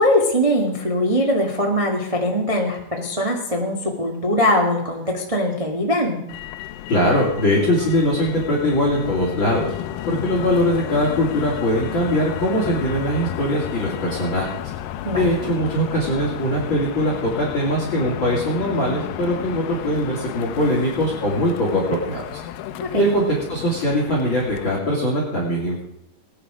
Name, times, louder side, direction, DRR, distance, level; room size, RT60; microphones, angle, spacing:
voice 1, 0.0-6.2 15.0-15.3 22.8-23.0, left 1 dB, 30° right, 0 dB, 0.6 m, -21 dB
Motor vehicle (road), 6.3-24.8, left 12 dB, 75° left, 2.2 m, -33 dB
voice 2, 6.9-9.7 10.1-14.5 15.1-22.4 22.9-23.2 23.5-25.8, equal, 35° left, -4 dB, 3.3 m, -21 dB
19.5 x 9.8 x 5.0 m, 0.80 s
omnidirectional pair, 4.3 m